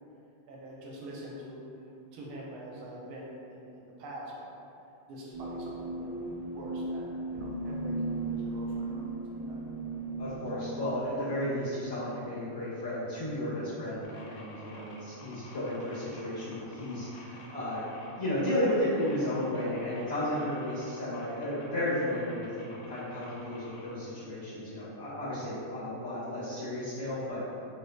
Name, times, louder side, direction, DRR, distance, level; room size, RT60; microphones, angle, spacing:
voice 1, 0.5-1.6 2.1-4.5 5.1-6.1 6.5-9.2 9.5-9.6, right 1 dB, 75° right, -4 dB, 1.4 m, -45 dB
sound 1, 5.3-11.4, right 2 dB, 45° right, 0.9 m, -36 dB
voice 2, 10.2-17.8 18.2-27.4, left 1 dB, 25° left, -18 dB, 1.0 m, -33 dB
sound 2, 14.0-23.9, left 2 dB, 75° left, 1.2 m, -51 dB
3.3 x 3.2 x 2.3 m, 2.7 s
omnidirectional pair, 2.4 m